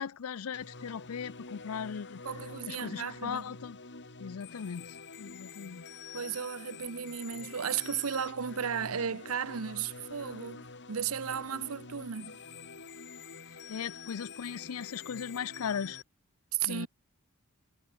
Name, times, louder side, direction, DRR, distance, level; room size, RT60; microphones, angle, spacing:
voice 1, 0.0-2.2 2.7-3.8 4.2-5.9 13.7-16.0 16.7-16.9, left 7 dB, 85° left, 0.5 m, -38 dB
sound 1, 0.5-16.0, left 4 dB, 55° left, 4.2 m, -47 dB
voice 2, 2.2-3.5 6.1-12.4 16.5-16.9, right 7 dB, 80° right, 0.8 m, -35 dB
head